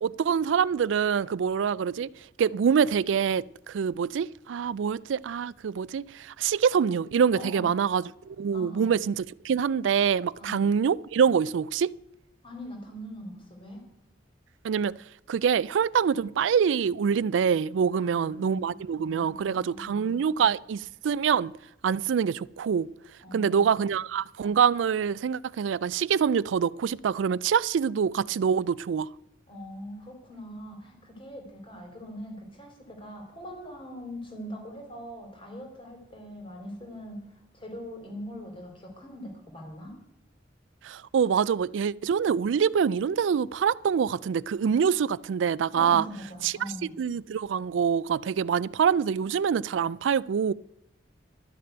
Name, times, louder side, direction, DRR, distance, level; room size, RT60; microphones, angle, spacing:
voice 1, 0.0-2.1 2.4-11.9 14.6-14.9 15.3-21.5 21.8-22.9 23.3-29.1 40.8-46.0 46.4-46.5 47.0-50.5, right 7 dB, 85° right, 0.3 m, -25 dB
voice 2, 7.3-7.7 8.5-8.9 10.4-10.7 12.4-13.9 17.9-18.7 19.1-20.1 23.2-23.9 29.5-37.3 37.5-40.0 45.7-46.9, equal, 30° left, 3.2 m, -42 dB
12.5 x 6.7 x 9.0 m
head